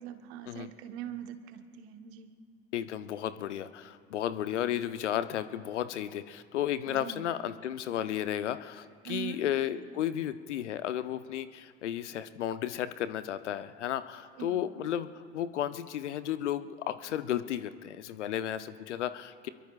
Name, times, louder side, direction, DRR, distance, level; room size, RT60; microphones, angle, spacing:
voice 1, 0.0-2.3 6.9-7.2 9.0-9.4 14.4-14.6, right 10 dB, 65° right, 7 dB, 1.3 m, -42 dB
voice 2, 2.7-15.1 15.3-19.5, left 11 dB, 80° left, 13 dB, 0.7 m, -33 dB
25.0 x 22.5 x 2.4 m, 2.1 s
hypercardioid pair, 70°, 35 cm